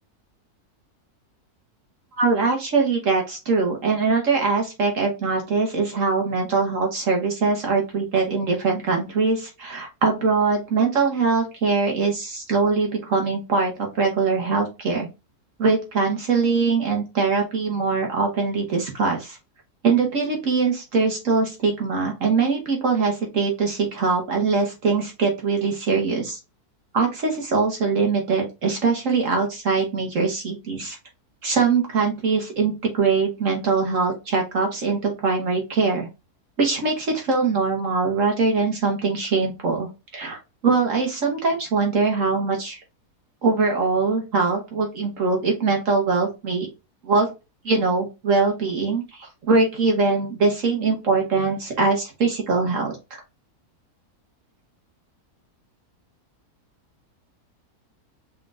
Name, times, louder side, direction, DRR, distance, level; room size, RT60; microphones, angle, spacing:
voice 1, 2.2-15.1 15.6-19.4 19.8-26.4 26.9-31.0 31.4-36.1 36.6-40.4 40.6-42.8 43.4-46.7 47.0-47.3 47.6-53.2, right 4 dB, 55° right, 1 dB, 1.3 m, -22 dB
4.3 x 3.6 x 2.4 m, 0.27 s
omnidirectional pair, 1.7 m